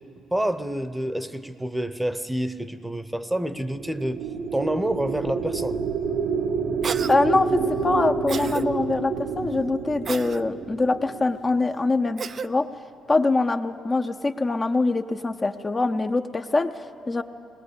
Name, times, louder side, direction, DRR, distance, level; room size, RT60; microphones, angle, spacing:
voice 1, 0.3-4.3 4.5-5.8, right 1 dB, 5° right, 12 dB, 0.8 m, -28 dB
sound 1, 3.6-12.1, right 5 dB, 85° right, 1.7 m, -29 dB
Cough, 6.8-7.2 8.3-8.6 10.1-10.4 12.2-12.5, right 6 dB, 45° right, 0.5 m, -31 dB
voice 2, 7.1-12.7 13.1-17.2, left 3 dB, 25° left, 6 dB, 0.6 m, -24 dB
20.0 x 19.0 x 8.4 m, 2.5 s
cardioid pair, 90°, 0 cm